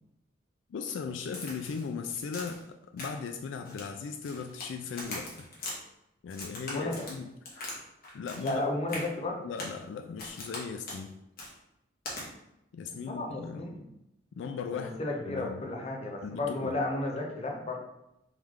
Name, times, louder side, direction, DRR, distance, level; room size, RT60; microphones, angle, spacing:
voice 1, 0.7-2.6 2.9-5.5 6.2-7.3 8.1-8.7 8.9-9.0 9.4-11.2 12.7-13.6 14.3-14.9 15.3-15.7 16.2-16.8, left 5 dB, 80° left, 6 dB, 0.3 m, -37 dB
Crack, 1.3-1.9 2.3-2.6 3.0-3.3 3.7-4.7 5.0-5.8 6.3-7.8 8.0-8.6 8.9-9.1 9.6-9.8 10.2-10.6 10.9-11.0 11.4-11.5 12.1-12.2, left 2 dB, 50° left, 1.2 m, -40 dB
voice 2, 6.6-7.0 8.4-9.4 12.9-13.9 14.7-17.8, left 2 dB, 35° left, 1 dB, 0.7 m, -33 dB
3.3 x 3.1 x 3.6 m, 0.86 s
head